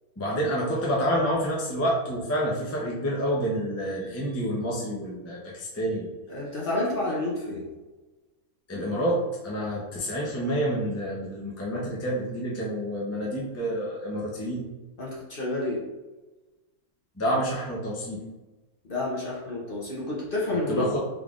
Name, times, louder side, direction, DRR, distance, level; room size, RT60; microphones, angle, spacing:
voice 1, 0.2-6.1 8.7-14.6 17.2-18.2 20.7-21.0, equal, 20° left, -5 dB, 0.4 m, -28 dB
voice 2, 6.3-7.6 15.0-15.8 18.9-20.9, left 2 dB, 45° left, -4 dB, 0.8 m, -29 dB
3.6 x 3.6 x 2.4 m, 1.1 s
omnidirectional pair, 1.6 m